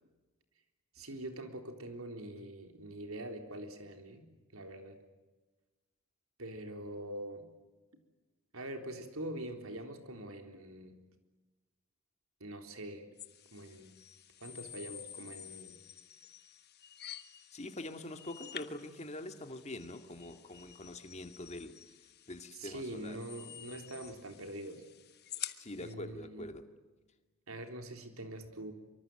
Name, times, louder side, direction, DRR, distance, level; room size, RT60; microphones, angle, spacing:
voice 1, 1.0-4.3 4.5-5.0 6.4-7.5 8.5-11.0 12.4-13.1 13.5-13.9 14.4-15.7 22.6-24.8 25.8-26.5 27.5-28.7, right 1 dB, 85° right, 6 dB, 3.9 m, -44 dB
sound 1, 13.2-25.9, left 11 dB, 50° left, 1.3 m, -50 dB
voice 2, 17.5-21.7 22.3-23.2 25.6-26.7, left 1 dB, 30° left, 7 dB, 2.2 m, -44 dB
25.0 x 24.5 x 7.9 m, 1.2 s
head